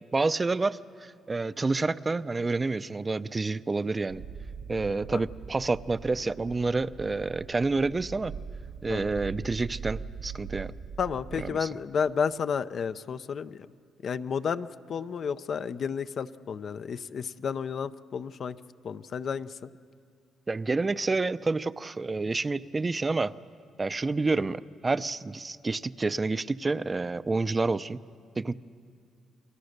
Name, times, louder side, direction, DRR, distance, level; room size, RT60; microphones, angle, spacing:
voice 1, 0.1-4.2 4.7-8.3 8.8-10.7 11.4-11.7 20.5-23.3 23.8-28.0 28.4-28.6, right 3 dB, 25° right, 15 dB, 0.5 m, -29 dB
sound 1, 4.1-11.5, right 6 dB, 80° right, 1.2 m, -41 dB
voice 2, 11.0-13.7 14.0-18.6 18.8-19.7, left 6 dB, 55° left, 12 dB, 0.6 m, -31 dB
29.5 x 22.0 x 6.6 m, 2.3 s
cardioid pair, 90°, 0 cm